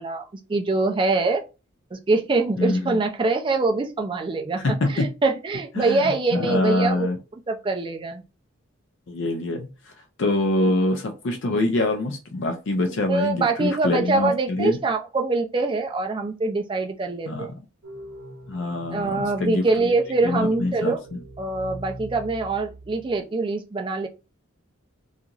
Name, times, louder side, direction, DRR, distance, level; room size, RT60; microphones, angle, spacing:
voice 1, 0.0-1.4 1.9-7.1 7.5-8.2 12.9-17.5 18.9-21.0 21.4-24.1, right 3 dB, 25° right, 4 dB, 0.4 m, -24 dB
voice 2, 2.6-3.0 4.6-5.1 5.8-7.2 9.1-9.7 10.2-14.8 17.3-17.5 18.5-19.6 20.2-20.9, left 2 dB, 60° left, 4 dB, 0.5 m, -24 dB
sound 1, 17.8-23.2, right 1 dB, 65° right, 0.8 m, -42 dB
2.9 x 2.4 x 2.4 m, 0.29 s
head